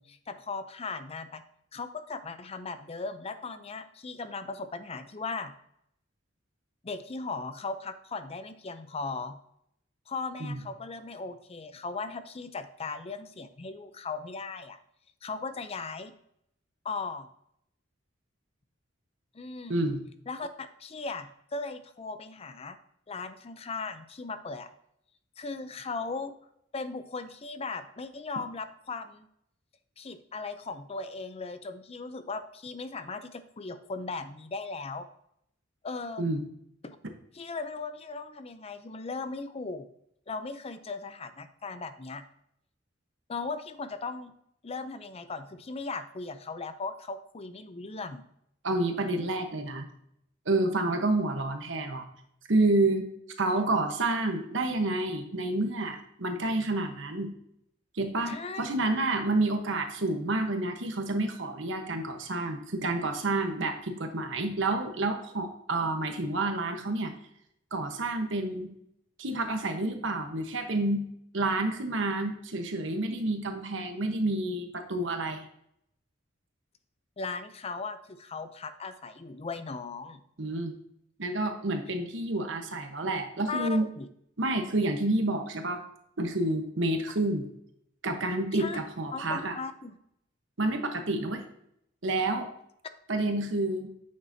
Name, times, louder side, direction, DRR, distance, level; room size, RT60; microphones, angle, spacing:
voice 1, 0.0-1.4 1.7-5.5 6.8-9.4 10.1-14.8 15.2-16.1 16.8-17.3 19.3-19.7 20.3-22.8 23.1-24.7 25.4-26.3 26.7-29.3 30.0-35.1 35.8-36.2 36.8-37.0 37.3-39.9 40.3-42.2 43.3-44.3 44.6-48.3 53.5-53.7 58.3-58.7 77.2-80.2 83.5-84.1 88.5-88.8 89.1-90.0, left 4 dB, 30° left, 10 dB, 0.5 m, -38 dB
voice 2, 19.7-20.0 36.2-36.4 48.6-49.9 50.5-52.0 52.5-53.1 53.4-57.3 57.9-67.1 67.7-68.7 69.2-71.1 71.3-75.4 80.4-80.8 81.2-83.9 84.4-85.8 86.2-87.5 88.0-89.6 90.6-91.4 92.0-92.5 93.1-93.9, right 2 dB, 70° right, 5 dB, 1.1 m, -29 dB
8.8 x 6.7 x 2.8 m, 0.73 s
head